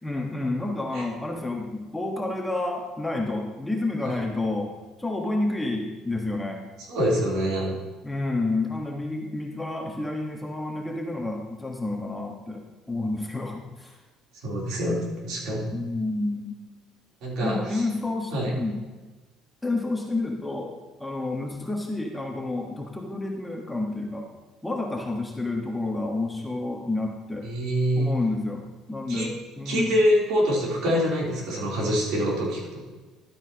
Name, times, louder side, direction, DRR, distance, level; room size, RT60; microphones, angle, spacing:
voice 1, 0.0-6.6 8.0-12.6 12.9-14.0 15.7-16.6 17.4-18.8 19.6-20.7 21.0-24.3 24.6-27.5 27.9-30.0, left 2 dB, 10° left, 0 dB, 1.4 m, -29 dB
voice 2, 6.9-7.8 14.4-15.7 17.2-17.8 18.3-18.5 27.4-28.1 29.1-29.3 29.6-32.8, equal, 70° right, -4 dB, 3.4 m, -25 dB
12.0 x 8.8 x 2.9 m, 1.3 s
cardioid pair, 110°, 0 cm